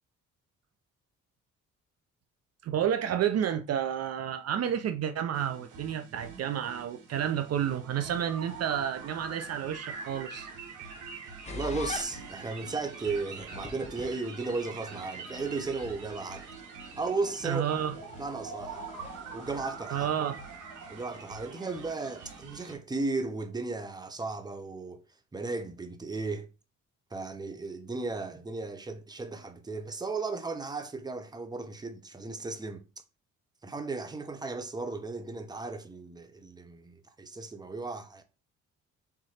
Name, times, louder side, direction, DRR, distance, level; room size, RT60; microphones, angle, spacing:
voice 1, 2.6-10.5 17.4-17.9 19.9-20.4, right 9 dB, 55° right, 0.5 m, -30 dB
sound 1, 5.3-22.7, right 4 dB, 80° right, 1.4 m, -44 dB
sound 2, 11.5-20.0, left 4 dB, 20° left, 1.0 m, -46 dB
voice 2, 11.5-16.5 17.0-17.6 18.2-18.8 19.3-20.1 20.9-25.0 25.3-26.5 27.1-32.8 33.6-38.2, right 3 dB, 15° right, 0.7 m, -35 dB
3.6 x 3.2 x 4.3 m
cardioid pair, 90°, 30 cm